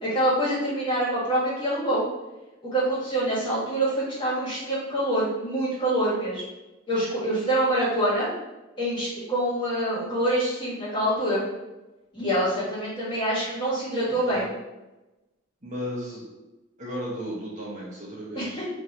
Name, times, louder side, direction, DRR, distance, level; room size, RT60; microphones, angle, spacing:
voice 1, 0.0-2.0 2.7-6.4 6.9-8.3 8.8-11.4 12.1-14.4 18.3-18.5, right 1 dB, 25° left, -8 dB, 1.4 m, -25 dB
voice 2, 14.1-14.5 15.6-16.2 16.8-18.7, equal, 40° right, -6 dB, 0.9 m, -35 dB
3.1 x 2.6 x 4.2 m, 1.0 s
head